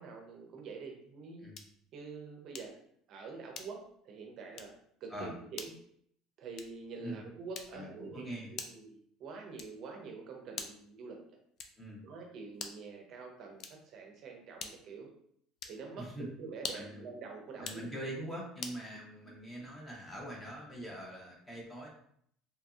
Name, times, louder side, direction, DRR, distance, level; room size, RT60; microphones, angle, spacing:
voice 1, 0.0-1.5 1.9-2.7 3.1-4.7 5.0-5.8 6.4-11.2 12.0-15.1 15.7-17.9 18.9-19.0, right 4 dB, 45° right, 2 dB, 0.5 m, -46 dB
sound 1, 1.5-1.9 2.5-2.9 3.5-4.0 4.5-4.8 5.5-5.8 6.5-6.9 7.5-8.0 8.6-8.9 9.6-9.9 10.5-10.9 11.6-11.9 12.5-12.9 13.6-14.0 14.6-15.0 15.6-15.9 16.5-17.0 17.5-17.9 18.6-18.9, left 5 dB, 45° left, 0.3 m, -45 dB
voice 2, 7.7-8.6 11.8-12.0 16.0-16.3 16.7-17.1 17.6-21.9, right 1 dB, 10° left, -2 dB, 0.7 m, -43 dB
2.8 x 2.6 x 2.3 m, 0.66 s
cardioid pair, 145°, 0 cm